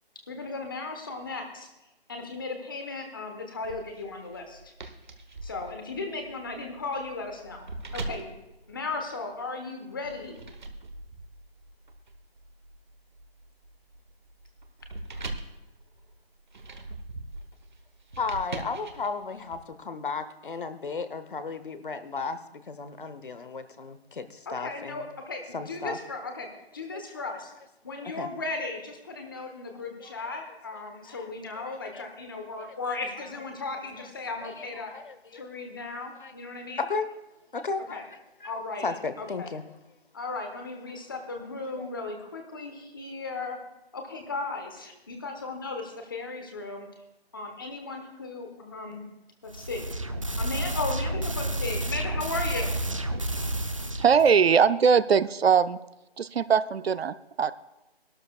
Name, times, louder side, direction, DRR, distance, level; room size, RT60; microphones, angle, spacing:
voice 1, 0.3-1.7 2.1-4.7 5.4-7.7 7.9-8.3 8.7-10.4 24.5-26.5 26.7-27.5 27.8-34.9 35.3-36.8 37.9-38.0 38.4-39.5 40.1-43.6 43.9-46.9 47.3-49.1 49.4-49.8 50.4-52.8, left 3 dB, 20° left, 4 dB, 1.1 m, -36 dB
sound 1, 3.6-9.5 10.0-19.6, right 2 dB, 50° right, 1.0 m, -42 dB
voice 2, 18.2-25.1 25.5-26.0 26.9-27.3 27.9-28.3 30.0-30.1 31.1-31.3 31.6-32.0 32.6-32.7 33.1-33.3 34.0-34.1 34.4-35.4 36.1-36.3 36.8-37.1 37.5-38.1 38.4-38.5 38.8-39.6 41.8-41.9, left 4 dB, 55° left, 11 dB, 0.8 m, -35 dB
sound 2, 49.5-54.3, right 1 dB, 35° right, 0.5 m, -30 dB
voice 3, 54.0-55.8 56.2-57.5, right 6 dB, 75° right, 14 dB, 0.6 m, -21 dB
19.0 x 12.5 x 2.3 m, 0.95 s
hypercardioid pair, 170°, 31 cm